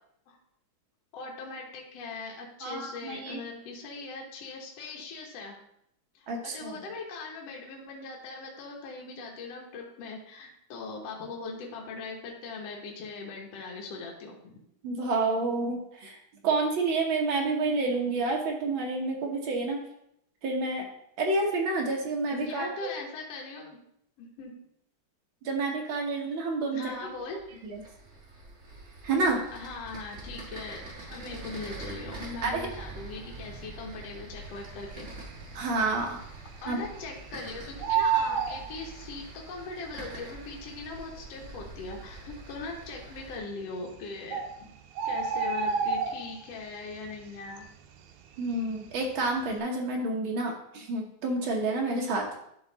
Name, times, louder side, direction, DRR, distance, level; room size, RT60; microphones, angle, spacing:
voice 1, 1.1-5.6 6.1-14.6 22.3-23.8 24.2-24.5 26.7-27.4 29.5-30.8 31.1-35.1 36.6-44.7 45.0-47.7, left 3 dB, 60° left, -1 dB, 2.1 m, -40 dB
voice 2, 2.6-3.4 6.3-6.8 14.8-16.2 16.4-19.8 20.4-20.8 21.2-22.7 25.4-26.9 27.6-27.8 29.0-29.4 32.4-32.7 35.5-36.2 36.7-36.8 48.4-52.2, right 3 dB, 60° right, 0 dB, 1.3 m, -29 dB
sound 1, 26.8-43.4, right 2 dB, 35° right, 1.2 m, -45 dB
Bird, 34.9-35.5 35.8-35.9 36.2-37.4 37.6-39.5 40.3-40.4 41.1-41.2 41.3-41.5 42.1-42.6 43.5-43.6 44.0-44.1 44.3-46.6 46.9-47.3 47.6-48.9 49.3-49.5, right 6 dB, 80° right, 2.1 m, -29 dB
11.0 x 4.0 x 3.9 m, 0.74 s
omnidirectional pair, 3.7 m